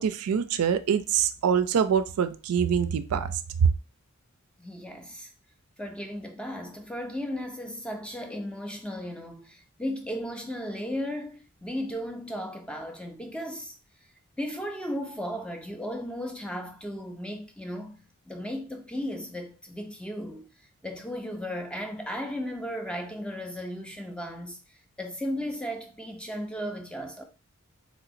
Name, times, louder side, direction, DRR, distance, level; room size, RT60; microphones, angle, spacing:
voice 1, 0.0-3.3 3.6-3.7, right 7 dB, 85° right, 0.4 m, -24 dB
voice 2, 4.6-5.3 5.8-13.7 14.4-20.5 20.8-24.6 25.0-27.2, equal, 5° left, 0.3 m, -35 dB
3.3 x 2.9 x 2.5 m
head